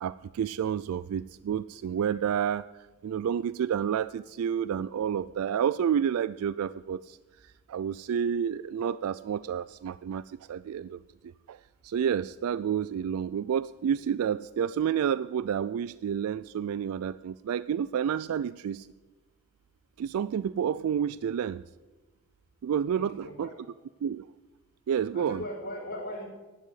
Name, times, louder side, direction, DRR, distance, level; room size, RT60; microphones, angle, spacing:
voice 1, 0.0-11.0 11.5-18.9 20.0-21.6 22.6-23.5 24.0-24.3 24.9-25.4, right 8 dB, 70° right, 17 dB, 0.3 m, -30 dB
voice 2, 22.9-23.6 25.1-26.3, left 1 dB, 45° left, -1 dB, 4.4 m, -39 dB
11.5 x 8.4 x 8.6 m, 1.2 s
head